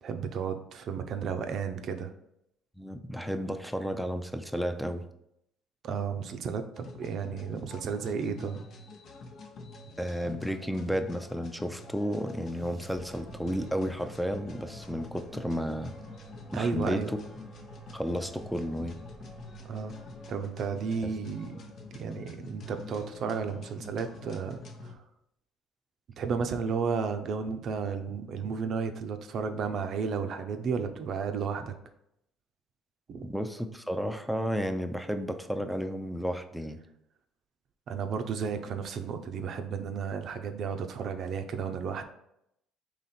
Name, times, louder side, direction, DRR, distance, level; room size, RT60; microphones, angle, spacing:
voice 1, 0.0-2.1 5.8-8.6 16.5-17.1 19.7-20.0 20.3-21.5 21.9-25.0 26.2-31.7 33.1-33.3 37.9-42.0, right 6 dB, 60° right, 7 dB, 0.5 m, -33 dB
voice 2, 2.8-5.1 10.0-15.9 16.5-17.2 17.9-19.0 21.0-21.1 33.2-36.8, equal, ahead, 7 dB, 0.5 m, -32 dB
sound 1, 6.7-24.9, left 2 dB, 60° left, 0.7 m, -47 dB
sound 2, 12.0-22.2, right 2 dB, 20° right, 0.8 m, -55 dB
4.0 x 3.0 x 4.2 m, 0.78 s
supercardioid pair, 85°, 0 cm